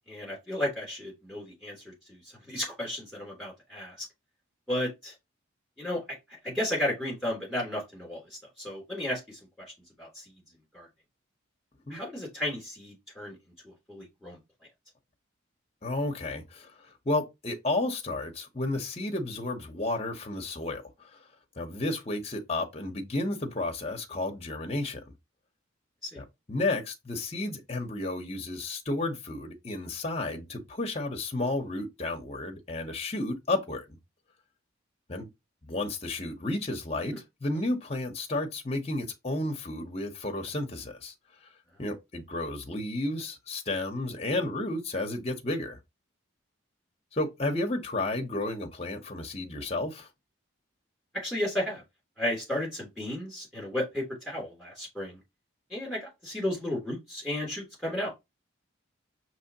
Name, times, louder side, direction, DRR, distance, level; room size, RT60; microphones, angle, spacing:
voice 1, 0.1-2.2 2.5-4.1 4.7-5.1 5.8-6.2 6.4-9.4 10.0-10.2 10.7-10.9 11.9-13.3 13.6-14.4 26.0-26.2 51.1-51.8 52.2-55.2 55.7-58.1, left 1 dB, ahead, 2.8 m, -33 dB
voice 2, 15.8-16.7 17.1-21.1 21.6-25.0 26.2-33.8 35.1-35.3 35.7-37.1 37.4-41.1 41.8-45.8 47.1-50.1, left 2 dB, 30° left, 0.8 m, -32 dB
5.6 x 3.0 x 2.8 m
head